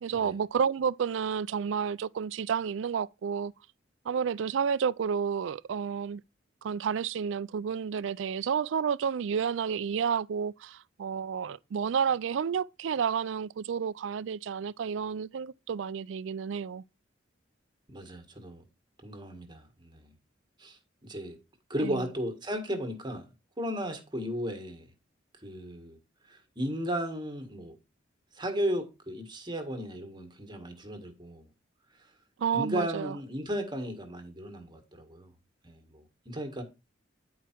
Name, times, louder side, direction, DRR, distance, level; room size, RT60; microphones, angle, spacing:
voice 1, 0.0-3.5 4.1-6.2 6.6-16.8 21.8-22.0 32.4-33.1, right 7 dB, 75° right, 0.4 m, -30 dB
voice 2, 17.9-18.6 19.0-20.1 20.6-21.4 21.7-23.3 23.6-24.9 25.4-26.0 26.3-27.7 28.3-31.5 32.0-32.1 32.5-35.3 35.6-36.6, equal, 25° right, 1.6 m, -35 dB
10.0 x 4.7 x 4.5 m
head